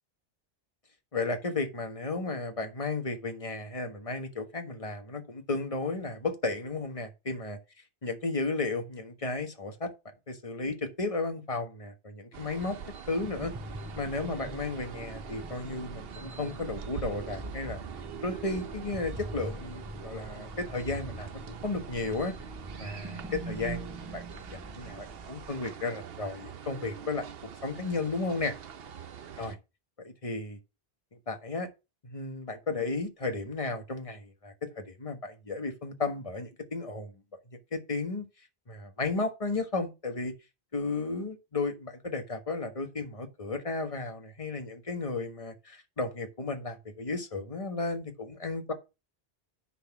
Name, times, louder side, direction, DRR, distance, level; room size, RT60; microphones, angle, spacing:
voice 1, 1.1-7.6 8.0-9.9 10.3-12.8 13.1-13.5 14.0-17.8 18.2-22.4 22.8-27.3 27.6-28.5 29.4-29.6 30.0-30.6 31.3-31.7 32.0-37.2 37.7-38.3 38.7-40.3 40.7-48.7, left 3 dB, 35° left, 1.4 m, -34 dB
sound 1, 12.3-29.6, right 7 dB, 70° right, 1.0 m, -44 dB
sound 2, 13.1-25.5, right 2 dB, 20° right, 0.8 m, -43 dB
9.9 x 4.1 x 5.8 m
omnidirectional pair, 1.0 m